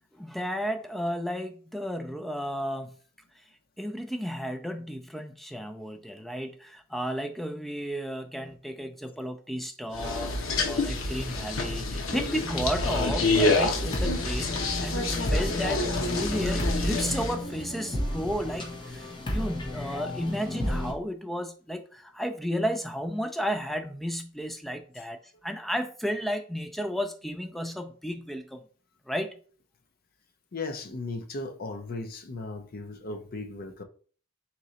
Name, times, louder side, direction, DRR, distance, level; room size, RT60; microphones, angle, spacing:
voice 1, 0.1-2.9 3.8-10.3 10.7-14.5 14.8-15.8 16.1-25.2 25.4-28.6 29.1-29.3, equal, ahead, 0.4 m, -33 dB
sound 1, 9.9-17.3, left 2 dB, 90° left, 0.9 m, -28 dB
sound 2, 13.7-20.9, left 1 dB, 25° left, 0.9 m, -33 dB
voice 2, 30.5-33.8, left 3 dB, 50° left, 0.6 m, -36 dB
3.8 x 3.0 x 4.1 m
head